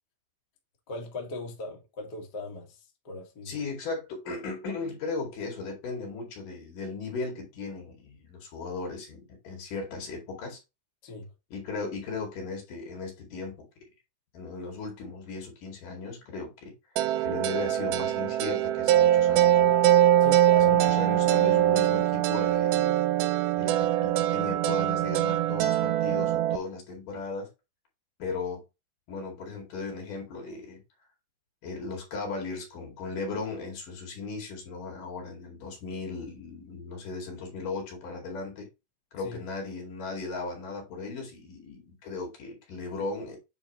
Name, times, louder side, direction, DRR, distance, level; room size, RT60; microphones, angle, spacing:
voice 1, 0.9-2.8 3.0-3.5 11.0-11.3 20.2-20.7 39.2-39.4, left 2 dB, 40° left, 1.6 m, -38 dB
voice 2, 3.5-10.6 11.5-13.7 14.3-16.7 17.2-19.8 20.6-23.0 23.6-27.5 28.2-28.6 29.1-30.8 31.6-38.7 39.1-43.4, left 4 dB, 60° left, 3.6 m, -37 dB
sound 1, 17.0-26.6, right 12 dB, 80° right, 2.4 m, -23 dB
8.9 x 4.3 x 3.1 m
omnidirectional pair, 4.6 m